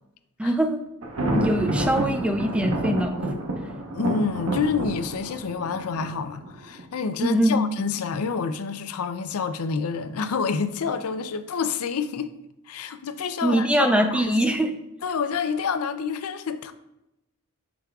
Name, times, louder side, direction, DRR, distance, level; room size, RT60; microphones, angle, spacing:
voice 1, 0.4-0.8 1.3-3.2 7.2-7.7 13.4-14.7, right 1 dB, 5° right, 0.4 m, -22 dB
Thunder, 1.0-6.8, right 1 dB, 70° right, 1.0 m, -29 dB
voice 2, 3.9-12.3 12.7-14.3 15.0-16.7, left 5 dB, 75° left, 0.5 m, -28 dB
7.9 x 6.1 x 2.3 m
head